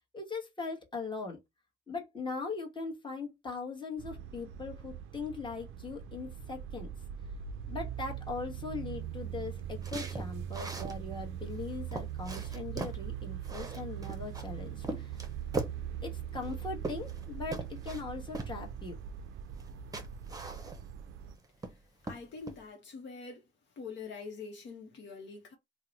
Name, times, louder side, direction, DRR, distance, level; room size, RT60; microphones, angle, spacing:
voice 1, 0.1-1.4 1.9-6.9 7.7-15.1 16.0-19.0, left 4 dB, 25° left, 1.2 m, -40 dB
sound 1, 4.0-21.4, right 9 dB, 90° right, 0.4 m, -41 dB
sound 2, 9.8-11.0 11.5-11.6 11.9-13.0 13.4-14.5 14.8-15.8 16.4-17.3 17.5-18.0 18.3-18.5 19.6-19.7 19.9-21.0 21.4-21.8 22.1-22.6, right 2 dB, 20° right, 0.7 m, -40 dB
voice 2, 22.0-23.5 23.8-25.6, left 4 dB, 65° left, 0.9 m, -44 dB
2.8 x 2.1 x 3.9 m
cardioid pair, 90°, 20 cm